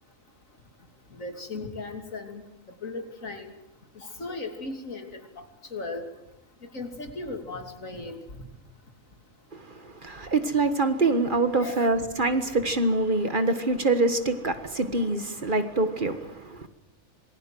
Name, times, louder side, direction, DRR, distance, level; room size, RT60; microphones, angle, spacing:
voice 1, 1.1-2.4 2.8-3.5 4.0-5.4 5.7-6.1 6.7-8.2 11.6-11.9, left 3 dB, 75° left, 3.3 m, -36 dB
voice 2, 9.5-16.7, right 2 dB, 40° right, 1.7 m, -25 dB
27.0 x 20.5 x 7.8 m
omnidirectional pair, 1.4 m